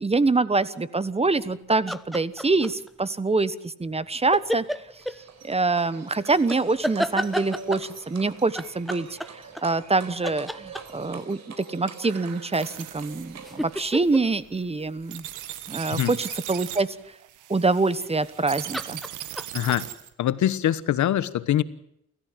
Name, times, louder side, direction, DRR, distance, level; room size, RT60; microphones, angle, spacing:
voice 1, 0.0-4.6 5.4-15.3 15.7-16.9 17.5-19.0, right 3 dB, 20° right, 16 dB, 1.2 m, -25 dB
sound 1, 1.7-2.9 4.3-5.2 6.5-7.9 8.6-10.0 10.2-11.2 13.0-15.6 18.0-18.4 18.7-19.8, equal, ahead, 0.9 m, -31 dB
Livestock farm animals working animals, 4.7-13.8, right 6 dB, 60° right, 4.4 m, -45 dB
sound 2, 12.0-20.1, right 12 dB, 90° right, 1.8 m, -39 dB
voice 2, 19.5-19.9 20.2-21.6, left 12 dB, 70° left, 15 dB, 1.2 m, -23 dB
29.0 x 14.5 x 7.4 m, 0.78 s
cardioid pair, 90°, 30 cm